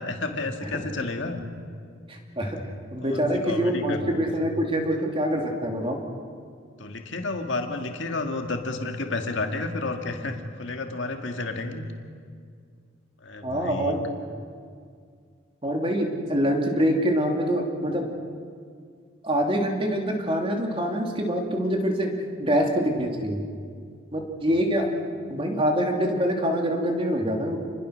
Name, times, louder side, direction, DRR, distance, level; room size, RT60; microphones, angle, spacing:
voice 1, 0.0-1.4 3.0-4.3 6.8-11.8 13.2-14.1 24.5-24.6, left 3 dB, 60° left, 4 dB, 2.1 m, -31 dB
voice 2, 2.1-2.6 2.9-6.0 13.4-14.0 15.6-18.1 19.2-22.1 22.4-23.5 24.1-24.9 25.3-27.6, equal, 25° right, 2 dB, 2.9 m, -25 dB
28.5 x 21.0 x 6.5 m, 2.2 s
head